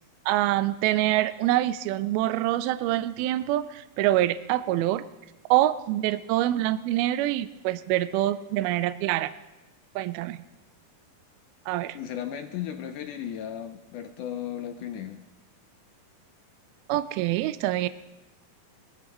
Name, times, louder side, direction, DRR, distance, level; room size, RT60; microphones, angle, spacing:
voice 1, 0.3-5.1 5.5-9.3 10.0-10.4 11.7-12.0 16.9-17.9, right 14 dB, 85° right, 13 dB, 2.5 m, -25 dB
voice 2, 11.9-15.2, left 10 dB, 75° left, 7 dB, 1.9 m, -35 dB
21.5 x 14.5 x 3.0 m, 1.1 s
omnidirectional pair, 4.3 m